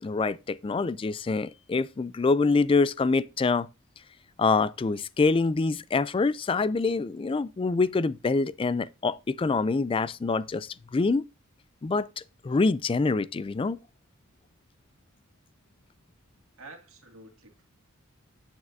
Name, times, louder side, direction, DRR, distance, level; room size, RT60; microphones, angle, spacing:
voice 1, 0.0-3.7 4.4-11.2 11.8-13.8, left 3 dB, 25° left, 0.3 m, -25 dB
voice 2, 16.6-17.6, right 2 dB, 70° right, 2.1 m, -49 dB
9.5 x 7.3 x 2.6 m
head